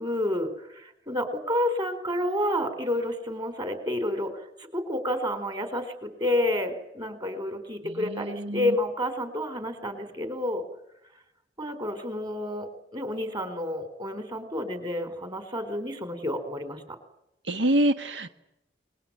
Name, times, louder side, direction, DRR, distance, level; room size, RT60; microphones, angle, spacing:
voice 1, 0.0-10.6 11.6-17.0, left 1 dB, 25° right, 10 dB, 4.6 m, -30 dB
voice 2, 8.0-8.6 17.5-18.3, right 1 dB, 75° right, 9 dB, 1.4 m, -25 dB
28.0 x 22.0 x 9.1 m, 0.84 s
head